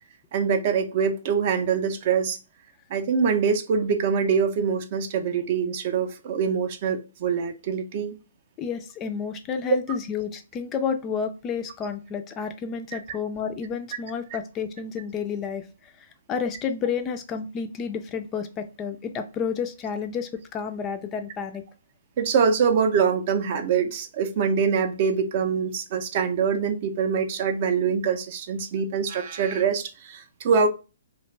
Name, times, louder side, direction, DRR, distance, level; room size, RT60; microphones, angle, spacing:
voice 1, 0.3-2.4 2.9-8.2 22.2-30.7, right 6 dB, 45° right, 0.4 m, -24 dB
voice 2, 8.6-21.6, left 6 dB, 25° left, 0.3 m, -30 dB
2.4 x 2.1 x 3.1 m
figure-of-eight pair, 130°, 0 cm